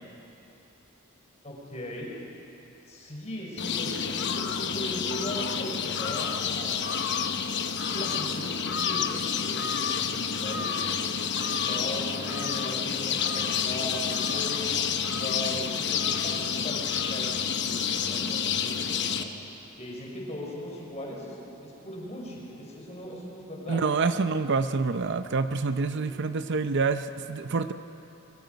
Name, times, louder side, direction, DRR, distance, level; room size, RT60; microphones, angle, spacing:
voice 1, 1.4-2.1 2.9-7.0 7.7-10.9 11.7-19.3 19.8-21.4 21.6-24.2 25.9-26.1, left 1 dB, 30° left, -3 dB, 5.0 m, -39 dB
sound 1, 3.6-19.2, left 6 dB, 55° left, 1.0 m, -29 dB
voice 2, 23.7-27.7, right 4 dB, 55° right, 10 dB, 0.6 m, -27 dB
24.0 x 23.0 x 5.2 m, 2.9 s
head